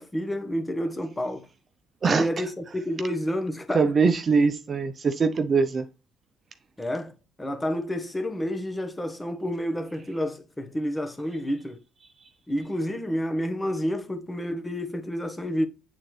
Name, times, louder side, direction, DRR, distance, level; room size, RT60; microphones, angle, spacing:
voice 1, 0.0-1.5 2.0-3.9 6.8-11.8 12.5-15.7, equal, 15° left, 1.2 m, -29 dB
voice 2, 2.0-2.4 3.7-5.9, right 5 dB, 45° right, 0.6 m, -22 dB
8.4 x 3.9 x 3.1 m
supercardioid pair, 80°, 0 cm